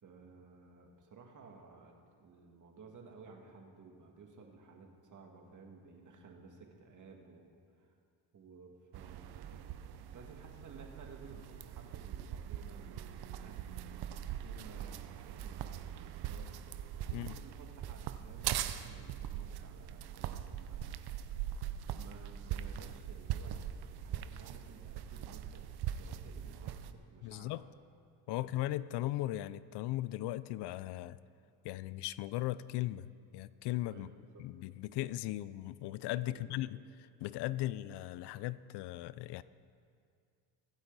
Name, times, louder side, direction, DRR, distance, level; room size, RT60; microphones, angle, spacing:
voice 1, 0.0-7.9 8.3-9.7 10.1-16.6 17.0-21.0 22.0-25.6 26.0-27.8 28.3-28.6 33.9-34.5 36.1-36.7, right 4 dB, 45° right, 2 dB, 2.2 m, -56 dB
sound 1, 8.9-26.9, right 10 dB, 65° right, 0.7 m, -41 dB
voice 2, 27.2-27.6 28.3-31.2 31.6-33.1 33.3-34.1 34.4-36.7 37.2-39.4, left 16 dB, 75° left, 17 dB, 0.5 m, -37 dB
24.0 x 8.0 x 4.1 m, 2.3 s
cardioid pair, 100°, 41 cm